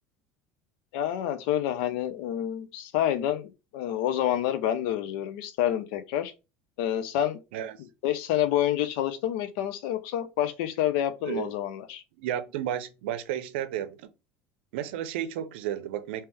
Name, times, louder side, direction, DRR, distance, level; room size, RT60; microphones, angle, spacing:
voice 1, 0.9-6.3 6.8-7.4 8.0-12.0, left 11 dB, 80° left, 0.6 m, -28 dB
voice 2, 12.2-14.1 14.7-16.2, right 11 dB, 90° right, 0.6 m, -32 dB
3.4 x 2.9 x 3.3 m
supercardioid pair, 110°, 6 cm